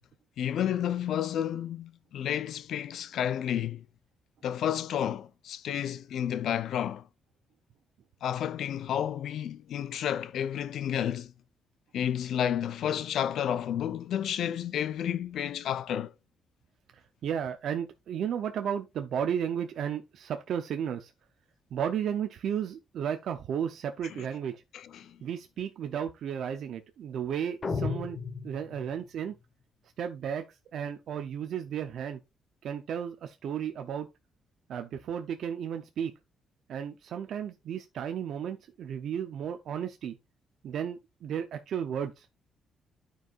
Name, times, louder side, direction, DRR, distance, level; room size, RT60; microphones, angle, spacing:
voice 1, 0.4-3.8 4.4-7.0 8.2-11.3 11.9-16.1 24.1-24.3 24.7-25.2, left 10 dB, 75° left, 0.5 m, -31 dB
voice 2, 17.2-21.1 21.7-24.6 25.2-28.2 28.4-29.3 30.0-30.4 30.7-32.2 32.6-34.1 34.7-36.1 36.7-40.1 40.6-42.3, right 8 dB, 70° right, 0.6 m, -33 dB
sound 1, 27.6-29.1, left 4 dB, 35° left, 1.1 m, -34 dB
12.5 x 4.7 x 2.4 m
cardioid pair, 115°, 0 cm